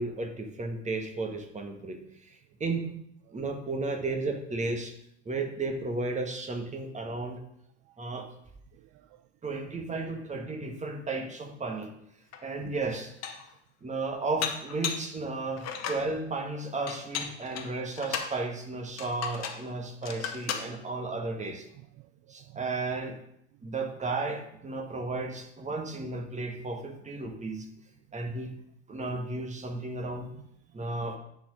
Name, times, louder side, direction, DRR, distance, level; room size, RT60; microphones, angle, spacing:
voice 1, 0.0-2.4 2.6-2.9 3.3-4.9 5.3-7.4 8.0-8.3 9.4-11.9 12.4-13.4 13.8-21.7 22.3-23.2 23.6-27.7 28.1-28.5 28.9-30.3 30.7-31.2, right 3 dB, 20° right, 1.6 m, -34 dB
voice 2, 8.7-9.3 12.6-12.8 22.0-22.6 30.3-31.2, right 18 dB, 40° right, 0.4 m, -54 dB
Dishes pots and pans, 12.3-12.4 12.9-13.5 14.4-15.1 15.6-16.1 16.9-18.4 19.0-19.6 20.0-20.7, left 7 dB, 40° left, 1.3 m, -35 dB
10.0 x 4.5 x 5.2 m
hypercardioid pair, 75°, 38 cm